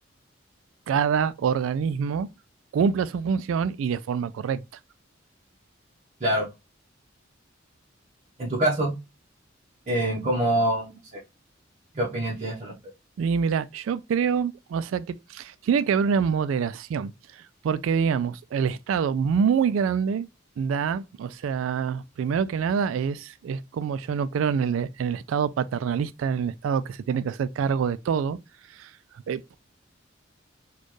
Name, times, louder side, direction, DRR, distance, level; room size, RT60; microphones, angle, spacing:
voice 1, 0.9-2.3 2.7-4.6 13.2-20.3 20.6-28.4 28.7-28.9 29.3-29.5, right 6 dB, 90° right, 0.3 m, -26 dB
voice 2, 8.4-8.9 9.9-11.2 11.9-12.7, right 1 dB, 35° right, 0.9 m, -25 dB
4.2 x 2.3 x 3.1 m
head